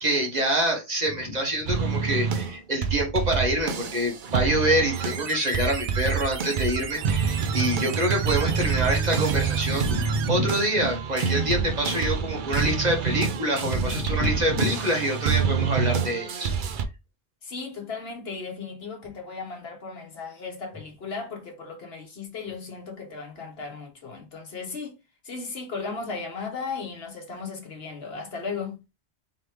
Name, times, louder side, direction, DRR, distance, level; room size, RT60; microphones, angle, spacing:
voice 1, 0.0-16.5, right 1 dB, 40° right, 1.5 m, -26 dB
sound 1, 1.7-5.3 5.5-16.8, right 6 dB, 55° right, 0.7 m, -27 dB
sound 2, 4.9-10.3, right 8 dB, 85° right, 0.9 m, -37 dB
voice 2, 17.4-25.0 25.2-28.8, left 4 dB, 65° left, 1.3 m, -36 dB
3.8 x 3.1 x 3.3 m
omnidirectional pair, 1.1 m